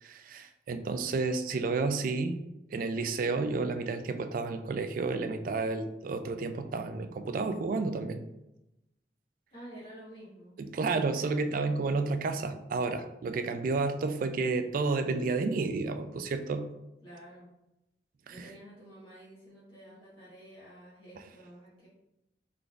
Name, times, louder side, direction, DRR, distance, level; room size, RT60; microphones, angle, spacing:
voice 1, 0.0-2.4 2.7-8.2 10.6-16.7 18.3-18.4, right 3 dB, 50° right, 8 dB, 0.3 m, -31 dB
voice 2, 9.5-10.6 17.0-17.5 18.3-21.9, right 1 dB, 30° left, -11 dB, 1.2 m, -50 dB
3.7 x 3.4 x 2.4 m, 0.89 s
head